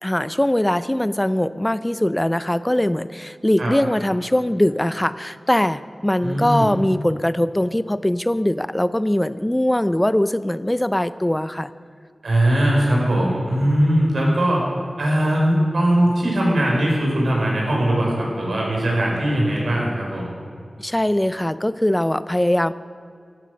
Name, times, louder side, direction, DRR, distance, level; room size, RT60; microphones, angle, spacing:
voice 1, 0.0-11.7 20.8-22.7, left 1 dB, 15° left, 15 dB, 0.4 m, -21 dB
voice 2, 6.2-6.7 12.2-14.7 15.0-20.3, right 1 dB, 90° right, -2 dB, 5.0 m, -20 dB
15.0 x 12.0 x 6.4 m, 2.3 s
wide cardioid pair, 70°, 0 cm